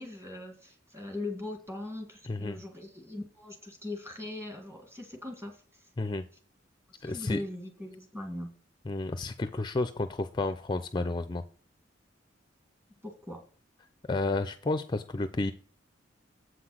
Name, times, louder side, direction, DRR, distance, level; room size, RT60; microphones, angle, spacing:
voice 1, 0.0-5.9 6.9-8.5 13.0-13.4, left 2 dB, 15° right, 3 dB, 1.9 m, -40 dB
voice 2, 2.3-2.6 6.0-6.2 7.0-7.4 8.9-11.4 14.1-15.5, left 2 dB, 25° left, 10 dB, 0.4 m, -31 dB
8.0 x 5.8 x 6.2 m, 0.43 s
head